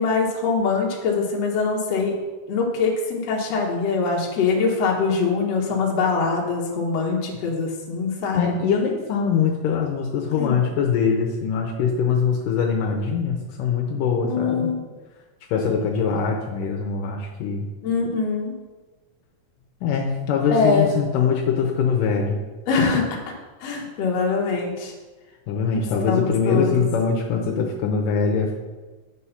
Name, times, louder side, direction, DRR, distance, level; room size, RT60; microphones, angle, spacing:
voice 1, 0.0-2.1 2.5-8.5 10.3-10.6 14.2-14.9 17.8-18.5 20.5-20.9 22.7-23.2 23.6-24.9 26.1-26.8, left 4 dB, 60° left, -1 dB, 2.1 m, -23 dB
voice 2, 8.3-14.7 15.5-17.7 19.8-22.4 25.5-28.5, left 6 dB, 80° left, 1 dB, 2.3 m, -23 dB
8.3 x 4.7 x 5.7 m, 1.3 s
omnidirectional pair, 3.9 m